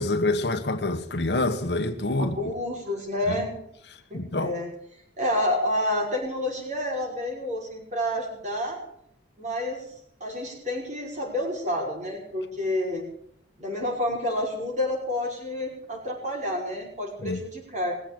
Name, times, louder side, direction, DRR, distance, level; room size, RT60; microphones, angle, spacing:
voice 1, 0.0-2.4 3.3-3.4 4.1-4.6 17.2-17.4, left 2 dB, 70° left, 1.3 m, -26 dB
voice 2, 2.2-3.6 4.1-4.7 5.2-8.8 9.4-9.9 10.2-13.1 13.6-17.9, left 1 dB, 40° right, 5.4 m, -29 dB
21.0 x 7.8 x 8.7 m
head